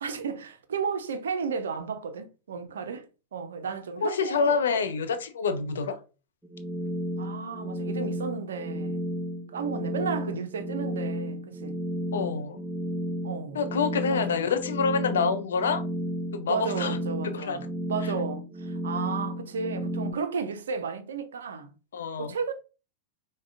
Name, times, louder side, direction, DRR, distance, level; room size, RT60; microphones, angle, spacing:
voice 1, 0.0-3.1 3.3-4.8 7.2-9.0 9.5-11.8 13.2-13.6 14.1-14.5 16.5-17.6 17.9-21.7 22.2-22.5, right 5 dB, 65° right, 0.5 m, -33 dB
voice 2, 4.0-6.0 12.1-12.6 13.5-15.8 16.3-17.0 17.2-17.7 21.9-22.3, left 5 dB, 65° left, 0.4 m, -27 dB
sound 1, 6.4-20.1, equal, 5° right, 0.5 m, -33 dB
4.8 x 2.1 x 2.4 m
figure-of-eight pair, 90°, 0 cm